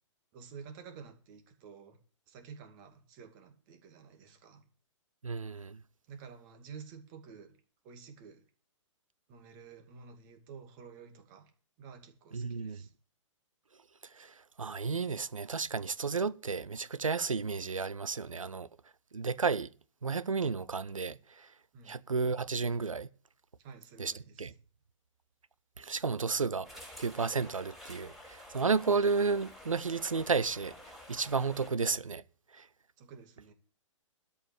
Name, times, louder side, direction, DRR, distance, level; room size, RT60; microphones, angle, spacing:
voice 1, 0.3-2.0 2.3-4.7 6.1-7.6 7.8-8.4 9.3-11.5 11.8-12.9 21.7-22.0 23.6-24.5 33.0-33.5, right 6 dB, 35° right, 2.4 m, -51 dB
voice 2, 5.2-5.8 12.3-12.8 14.1-18.7 19.1-19.7 20.0-21.5 21.9-23.1 24.0-24.1 24.4-24.5 25.8-30.7 31.1-32.2 32.5-32.7, right 4 dB, 85° right, 0.6 m, -32 dB
sound 1, 26.6-31.7, left 1 dB, ahead, 4.0 m, -50 dB
12.5 x 5.7 x 8.8 m
figure-of-eight pair, 115°, 17 cm